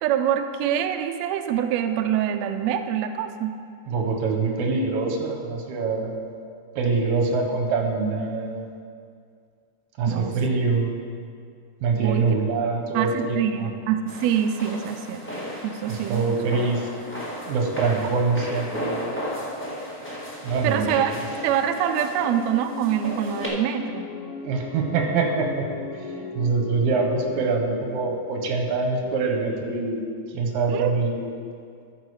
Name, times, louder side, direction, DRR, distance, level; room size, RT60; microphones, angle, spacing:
voice 1, 0.0-3.5 10.1-10.4 12.0-12.2 12.9-15.2 15.6-16.6 20.6-21.2 21.4-24.1 30.7-30.9, right 9 dB, 85° right, 7 dB, 1.5 m, -25 dB
voice 2, 3.9-6.2 6.8-8.7 10.0-10.9 11.8-13.7 15.9-19.0 20.4-20.9 24.4-25.6 26.3-30.0 30.3-31.3, right 4 dB, 70° right, 2 dB, 2.4 m, -24 dB
sound 1, 14.1-23.5, equal, 15° left, 0.4 m, -35 dB
sound 2, 20.9-27.6, left 5 dB, 80° left, 1.3 m, -38 dB
11.5 x 7.1 x 4.8 m, 2.3 s
omnidirectional pair, 3.7 m